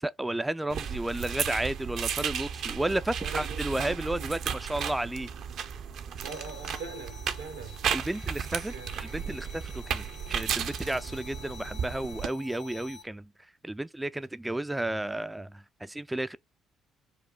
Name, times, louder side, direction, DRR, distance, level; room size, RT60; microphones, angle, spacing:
voice 1, 0.0-5.3 7.9-10.0 10.3-13.3 13.6-16.4, right 1 dB, 10° right, 0.3 m, -32 dB
sound 1, 0.7-12.3, right 7 dB, 65° right, 0.6 m, -34 dB
voice 2, 2.7-4.3 6.2-7.7 8.7-8.9, right 5 dB, 85° right, 0.8 m, -43 dB
sound 2, 6.2-13.0, left 5 dB, 85° left, 0.9 m, -49 dB
4.8 x 2.1 x 3.3 m
hypercardioid pair, 50°, 0 cm